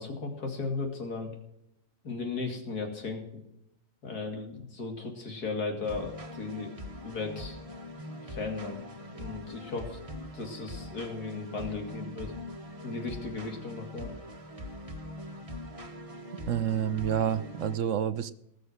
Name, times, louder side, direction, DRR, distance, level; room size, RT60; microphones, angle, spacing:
voice 1, 0.0-1.3 2.0-3.4 4.0-6.7 7.0-7.6 8.3-8.8 9.1-10.0 10.3-12.3 12.8-14.1, left 4 dB, 75° left, 3 dB, 2.9 m, -36 dB
sound 1, 5.8-17.8, left 1 dB, 20° right, 1.5 m, -42 dB
voice 2, 16.5-18.3, right 9 dB, 60° right, 13 dB, 0.9 m, -28 dB
19.0 x 6.5 x 6.5 m, 0.80 s
omnidirectional pair, 1.6 m